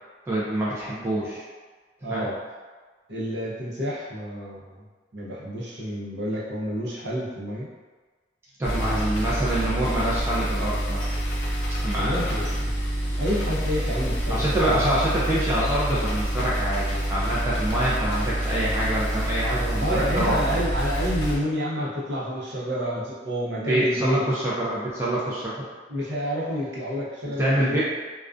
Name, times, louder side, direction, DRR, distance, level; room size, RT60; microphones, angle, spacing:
voice 1, 0.3-1.4 2.1-2.3 8.6-11.1 11.8-12.2 14.3-20.6 23.6-25.6 27.2-27.8, right 1 dB, 15° right, -8 dB, 0.3 m, -26 dB
voice 2, 2.0-2.3 3.1-4.7 5.1-7.7 11.9-12.7 13.2-14.9 19.7-24.2 25.9-27.8, equal, 60° right, -6 dB, 0.6 m, -29 dB
sound 1, 8.6-21.4, right 1 dB, 55° left, 0.5 m, -27 dB
2.4 x 2.2 x 2.4 m, 1.4 s
head